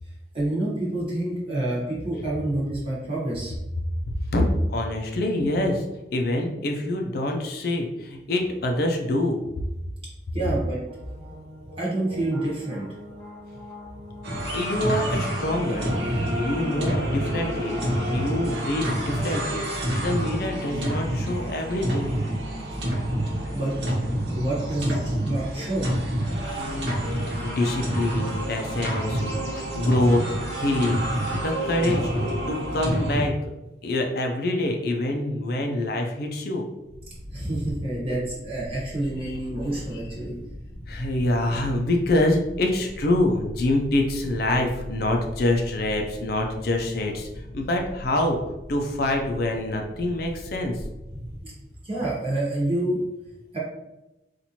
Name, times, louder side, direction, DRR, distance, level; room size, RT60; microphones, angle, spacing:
voice 1, 0.3-3.5 10.3-10.8 11.8-12.9 14.3-14.4 22.8-22.9 23.5-23.7 24.3-25.9 37.3-40.3 51.2-51.5 51.8-53.0 53.5-53.6, right 1 dB, 35° right, -6 dB, 1.1 m, -28 dB
voice 2, 4.3-5.9 6.1-9.4 14.5-22.2 26.6-27.0 27.4-32.1 32.5-33.4 33.8-36.7 39.2-39.4 40.9-47.3 47.5-48.4 48.7-50.8, left 1 dB, 60° left, 2 dB, 0.5 m, -26 dB
sound 1, 10.9-19.4, left 2 dB, 10° left, 1.3 m, -43 dB
sound 2, 14.2-33.3, equal, 80° right, 1.0 m, -28 dB
sound 3, 36.8-51.4, equal, 25° left, 0.8 m, -40 dB
4.3 x 2.5 x 2.8 m, 0.97 s
head